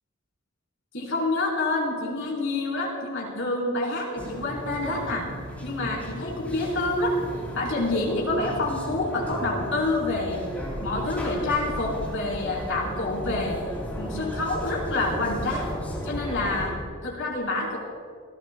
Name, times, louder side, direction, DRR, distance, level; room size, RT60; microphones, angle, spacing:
voice 1, 0.9-5.3 5.6-7.2 7.5-10.4 10.8-13.6 14.0-15.7 16.0-16.7 17.0-17.8, left 2 dB, 60° left, -3 dB, 4.5 m, -27 dB
sound 1, 4.2-16.7, equal, 5° left, 3.4 m, -35 dB
28.5 x 16.0 x 2.3 m, 2.1 s
head